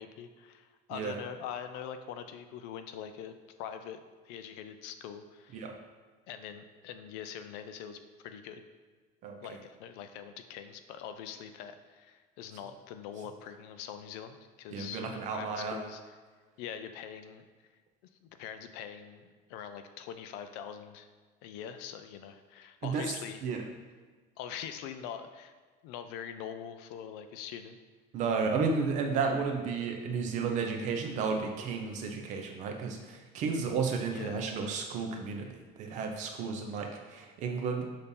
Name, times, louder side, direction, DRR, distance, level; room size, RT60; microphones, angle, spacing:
voice 1, 0.0-3.3 3.6-5.7 6.3-8.6 9.4-16.0 16.6-17.5 18.2-21.1 21.4-23.4 24.4-25.5 25.8-27.8 34.1-34.4, left 8 dB, 65° left, 9 dB, 0.5 m, -43 dB
voice 2, 9.2-9.6 14.7-15.8 22.8-23.1 23.4-23.7 28.1-37.9, right 5 dB, 40° right, 3 dB, 0.7 m, -33 dB
6.6 x 2.7 x 5.3 m, 1.5 s
cardioid pair, 175°, 19 cm